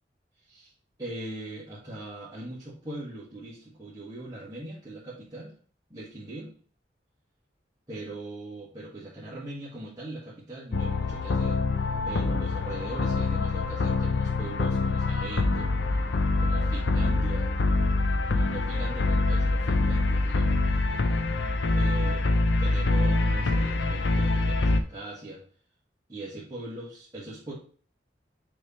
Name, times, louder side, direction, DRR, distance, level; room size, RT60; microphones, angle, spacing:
voice 1, 0.4-0.7 1.0-5.5 5.9-6.5 7.9-11.6 12.0-15.7 16.1-17.5 18.3-20.8 21.1-21.2 21.7-22.3 22.6-25.4 26.1-27.5, right 2 dB, 20° right, -10 dB, 1.8 m, -40 dB
sound 1, 10.7-24.8, left 2 dB, 85° left, 0.6 m, -25 dB
6.3 x 3.5 x 4.3 m, 0.44 s
head